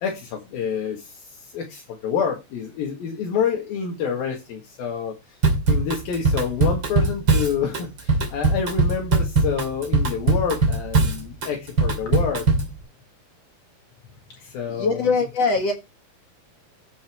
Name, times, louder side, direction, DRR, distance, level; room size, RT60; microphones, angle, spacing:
voice 1, 0.0-5.2 5.7-12.5 14.4-15.3, left 7 dB, 75° left, 1 dB, 3.6 m, -28 dB
Drum kit / Drum, 5.4-12.7, right 3 dB, 35° right, 2.7 m, -21 dB
voice 2, 14.7-15.7, left 4 dB, 50° left, 4 dB, 2.5 m, -22 dB
14.0 x 5.6 x 4.5 m, 0.25 s
omnidirectional pair, 4.4 m